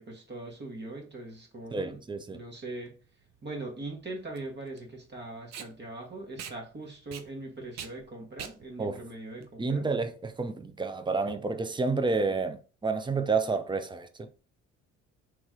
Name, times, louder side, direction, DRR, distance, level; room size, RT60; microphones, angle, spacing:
voice 1, 0.0-2.0 2.3-2.9 3.4-9.9, right 2 dB, 35° right, 1.2 m, -41 dB
voice 2, 1.7-2.4 8.8-9.0 9.6-14.3, right 4 dB, 15° right, 0.5 m, -30 dB
Packing tape duct tape, 2.8-10.2, right 8 dB, 60° right, 0.6 m, -46 dB
3.1 x 3.0 x 3.6 m
cardioid pair, 90°, 30 cm